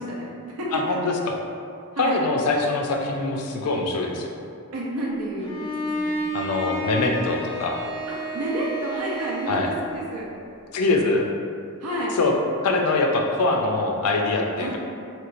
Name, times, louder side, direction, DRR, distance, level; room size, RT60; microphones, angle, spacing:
voice 1, 0.0-1.0 1.9-2.2 4.7-5.7 6.0-6.3 8.1-10.3 11.8-12.1 14.6-14.8, right 1 dB, 80° right, -4 dB, 0.6 m, -30 dB
voice 2, 0.7-1.4 2.0-4.3 6.3-7.8 9.5-9.7 10.7-11.3 12.2-12.3 12.6-14.8, left 3 dB, 85° left, 2 dB, 0.4 m, -23 dB
Bowed string instrument, 5.4-9.8, right 1 dB, 25° right, 0.9 m, -31 dB
3.2 x 2.9 x 2.5 m, 2.5 s
head